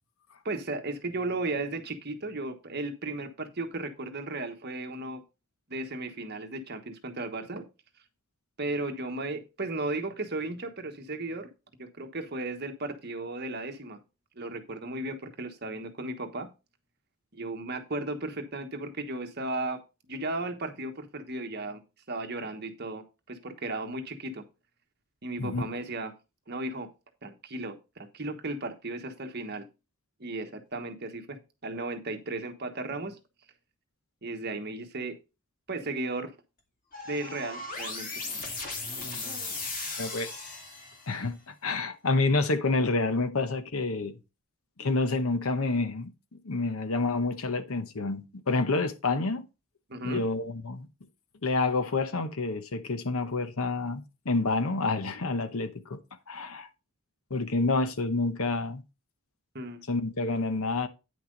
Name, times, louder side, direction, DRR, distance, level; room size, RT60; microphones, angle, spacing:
voice 1, 0.4-5.2 5.7-7.6 8.6-11.5 11.8-14.0 14.4-16.5 17.3-19.8 20.1-21.8 22.1-24.4 25.2-26.1 26.5-26.9 27.2-29.6 30.2-33.2 34.2-35.2 35.7-36.3 37.1-38.1 49.9-50.2 59.5-59.9, right 2 dB, 45° right, 1.2 m, -35 dB
sound 1, 36.9-41.2, left 3 dB, 40° left, 2.1 m, -37 dB
voice 2, 40.0-40.3 41.1-44.2 44.8-49.5 50.0-50.9 51.4-56.0 56.3-56.7 57.3-58.8 59.9-60.9, left 3 dB, 70° left, 1.0 m, -28 dB
9.4 x 5.9 x 3.9 m
head